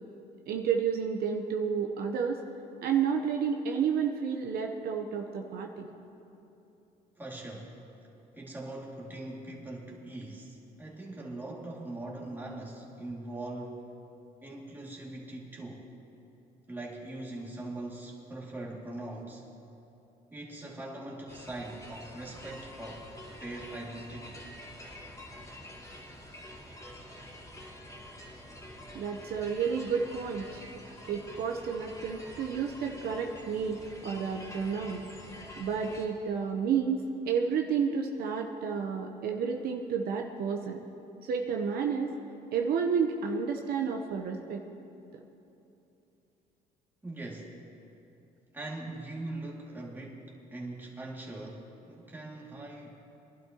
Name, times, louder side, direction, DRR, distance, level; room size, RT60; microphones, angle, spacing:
voice 1, 0.5-2.4 2.8-5.9 28.9-30.7 31.1-35.0 35.6-40.8 41.2-42.1 42.5-44.6, right 6 dB, 65° right, 3 dB, 1.0 m, -31 dB
voice 2, 7.2-7.8 8.3-13.8 14.4-15.9 16.7-19.5 20.3-23.1 23.4-24.4 47.0-47.6 48.5-53.1, right 2 dB, 10° right, -3 dB, 2.5 m, -41 dB
sound 1, 21.3-36.1, left 1 dB, 20° left, 3.2 m, -47 dB
22.5 x 12.0 x 3.0 m, 3.0 s
cardioid pair, 110°, 17 cm